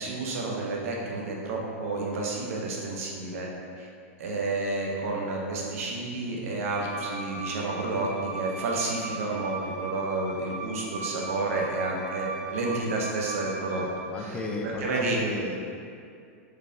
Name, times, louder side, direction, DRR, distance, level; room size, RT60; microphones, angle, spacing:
voice 1, 0.0-3.5 3.8-3.9 4.2-13.9 14.2-14.4 14.6-15.2, right 2 dB, 75° right, -2 dB, 0.7 m, -30 dB
Bowed string instrument, 6.8-14.0, right 3 dB, 40° right, 1.3 m, -38 dB
voice 2, 13.7-15.6, left 2 dB, 15° left, -1 dB, 0.3 m, -35 dB
3.3 x 3.2 x 2.6 m, 2.4 s
hypercardioid pair, 130°, 8 cm